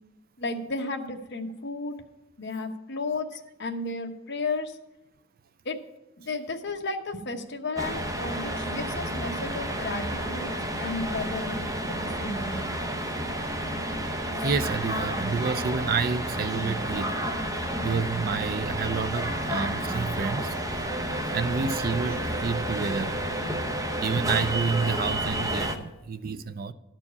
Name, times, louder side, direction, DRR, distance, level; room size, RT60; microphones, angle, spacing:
voice 1, 0.4-2.0 2.4-4.8 5.6-5.8 6.2-12.7, left 3 dB, 50° left, 1.0 m, -33 dB
sound 1, 7.8-25.8, right 1 dB, 15° right, 0.7 m, -30 dB
voice 2, 14.2-17.1 17.8-20.9 21.2-23.2 23.9-26.7, right 5 dB, 45° right, 0.4 m, -29 dB
12.5 x 4.5 x 8.4 m
head